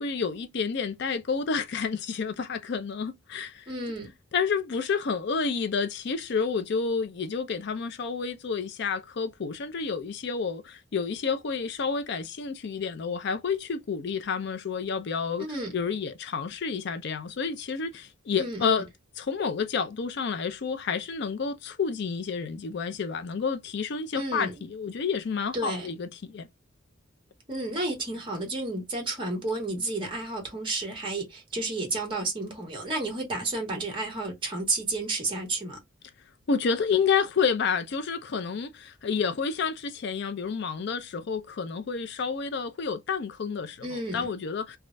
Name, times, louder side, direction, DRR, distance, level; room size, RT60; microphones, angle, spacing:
voice 1, 0.0-3.7 4.3-18.9 19.2-26.5 36.5-44.8, left 5 dB, 60° left, 0.5 m, -29 dB
voice 2, 3.7-4.1 15.4-15.7 18.4-18.8 24.1-24.5 25.5-25.9 27.5-35.8 43.8-44.3, right 2 dB, 25° right, 1.6 m, -31 dB
3.1 x 2.4 x 2.5 m
head